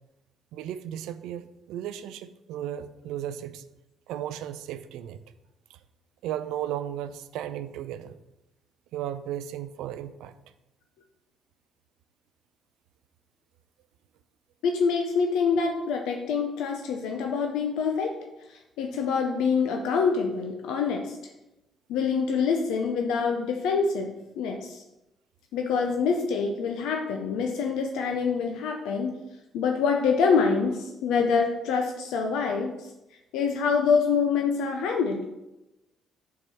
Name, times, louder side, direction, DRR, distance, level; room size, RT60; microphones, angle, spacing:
voice 1, 0.5-3.6 4.1-5.2 6.2-8.2 8.9-10.4, right 11 dB, 75° right, 12 dB, 0.4 m, -35 dB
voice 2, 14.6-18.1 18.5-21.2 21.9-24.8 25.5-29.2 29.5-32.9 33.3-35.2, left 5 dB, 75° left, 3 dB, 0.6 m, -26 dB
4.7 x 4.4 x 5.4 m, 0.96 s
hypercardioid pair, 50°, 0 cm